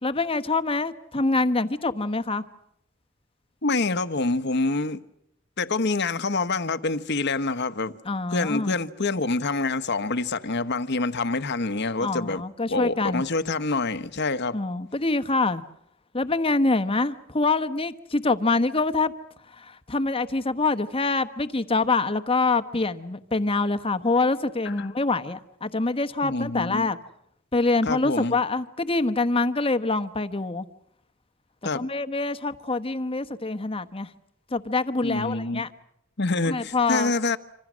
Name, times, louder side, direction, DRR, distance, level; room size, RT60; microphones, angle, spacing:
voice 1, 0.0-2.4 8.0-8.8 12.0-13.2 14.5-15.6 16.1-19.1 19.6-27.0 27.5-30.7 31.7-34.1 34.5-35.7 36.5-37.1, left 3 dB, 30° left, 1.1 m, -25 dB
voice 2, 3.6-5.0 5.6-7.9 8.3-12.4 12.7-14.6 24.6-24.9 26.2-26.9 27.8-28.3 31.6-31.9 35.0-35.6 36.2-37.4, left 3 dB, 55° left, 1.2 m, -26 dB
26.5 x 26.0 x 6.3 m
head